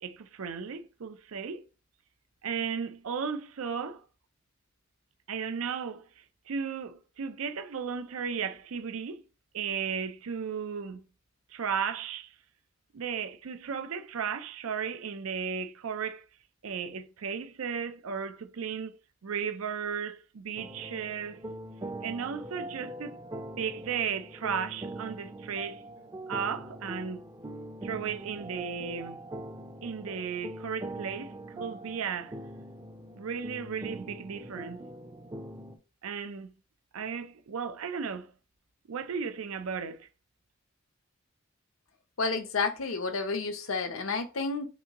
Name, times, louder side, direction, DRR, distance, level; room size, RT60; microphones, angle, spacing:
voice 1, 0.0-1.6 2.4-4.0 5.3-9.2 9.5-11.0 11.5-12.3 12.9-16.2 16.6-19.0 19.2-21.4 22.0-23.2 23.6-25.8 26.3-27.2 27.8-29.2 29.8-32.4 33.1-34.8 36.0-36.5 36.9-38.3 38.9-40.1, right 6 dB, 90° right, 0.5 m, -35 dB
sound 1, 20.6-35.8, right 1 dB, 20° right, 0.5 m, -42 dB
voice 2, 42.2-44.7, left 4 dB, 75° left, 0.8 m, -30 dB
6.0 x 2.7 x 2.9 m
head